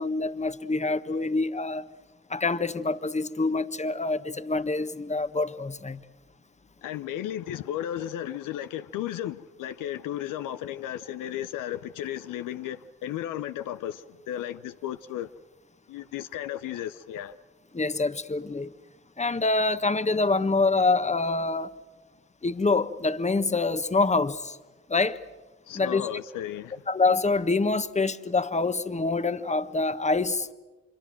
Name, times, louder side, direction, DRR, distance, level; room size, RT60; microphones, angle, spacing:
voice 1, 0.0-1.9 2.3-6.0 17.7-18.7 19.2-21.7 22.4-24.6 24.9-25.2 25.7-26.1 26.9-30.5, left 3 dB, 20° left, 1.4 m, -26 dB
voice 2, 6.8-15.3 15.9-17.4 25.7-26.9, left 11 dB, 75° left, 0.7 m, -34 dB
25.0 x 25.0 x 7.6 m
hypercardioid pair, 40°, 32 cm